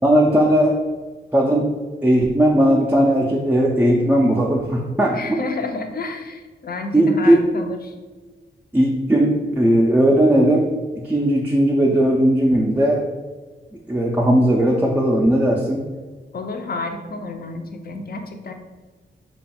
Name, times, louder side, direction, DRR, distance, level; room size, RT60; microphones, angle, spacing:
voice 1, 0.0-0.8 1.3-1.7 2.0-5.4 6.9-7.5 8.7-10.7 11.0-13.1 13.9-15.8, right 1 dB, 10° right, -2 dB, 0.3 m, -17 dB
voice 2, 5.1-7.9 16.3-18.5, left 3 dB, 50° left, 5 dB, 0.5 m, -30 dB
3.1 x 2.3 x 4.2 m, 1.3 s
cardioid pair, 80°, 20 cm